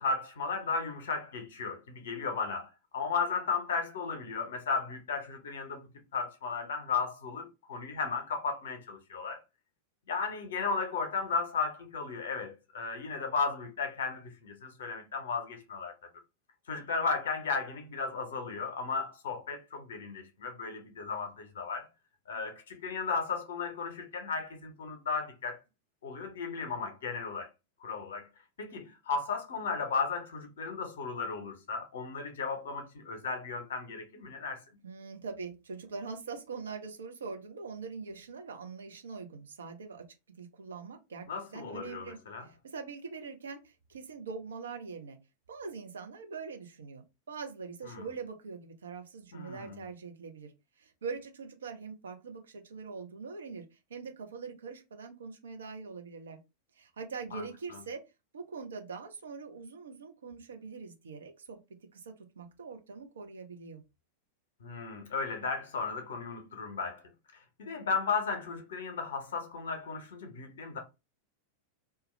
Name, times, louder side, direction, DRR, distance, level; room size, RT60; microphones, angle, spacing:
voice 1, 0.0-9.4 10.1-15.9 16.7-21.9 22.3-25.6 26.0-27.5 27.8-28.3 28.6-34.6 41.3-42.5 47.8-48.1 49.3-49.8 57.3-57.4 64.6-67.0 67.3-70.8, left 4 dB, 60° left, 0.6 m, -35 dB
voice 2, 34.8-40.0 40.4-41.3 41.5-45.2 45.5-50.5 50.8-56.4 56.8-58.0 58.3-61.6 61.9-63.8, right 5 dB, 65° right, 0.5 m, -43 dB
2.2 x 2.1 x 3.0 m
figure-of-eight pair, 90°, 0 cm